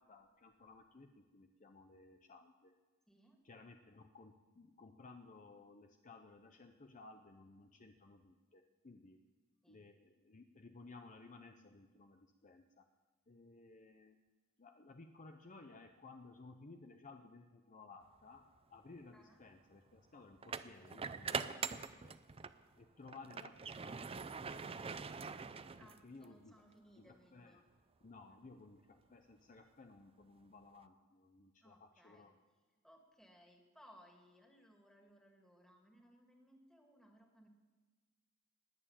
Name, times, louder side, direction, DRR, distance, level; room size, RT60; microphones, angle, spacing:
voice 1, 0.0-2.8 3.4-9.2 9.7-12.8 13.3-14.2 14.6-22.1 22.8-24.3 25.8-26.6 27.0-27.6 28.0-32.3, left 3 dB, 35° left, 6 dB, 0.7 m, -58 dB
voice 2, 3.1-3.4 9.6-9.8 19.1-19.4 25.8-27.6 28.3-28.5 31.6-32.3 32.8-37.5, equal, ahead, 1 dB, 2.2 m, -64 dB
sound 1, 18.4-18.6 20.4-22.6 23.0-26.2, right 5 dB, 25° right, 0.5 m, -43 dB
20.0 x 7.0 x 8.9 m, 1.3 s
head